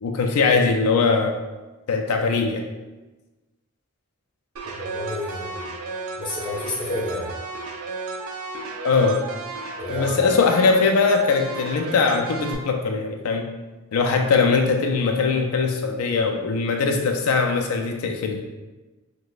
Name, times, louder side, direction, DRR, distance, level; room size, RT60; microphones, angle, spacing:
voice 1, 0.0-1.3 1.9-2.6 8.8-9.2 9.9-13.5 13.9-18.4, left 4 dB, 90° left, 3 dB, 0.4 m, -21 dB
voice 2, 4.6-5.6 6.2-7.3 9.8-10.2, left 2 dB, 20° left, -5 dB, 0.8 m, -30 dB
sound 1, 4.6-12.6, right 4 dB, 80° right, 0.5 m, -34 dB
4.8 x 2.1 x 2.3 m, 1.2 s
head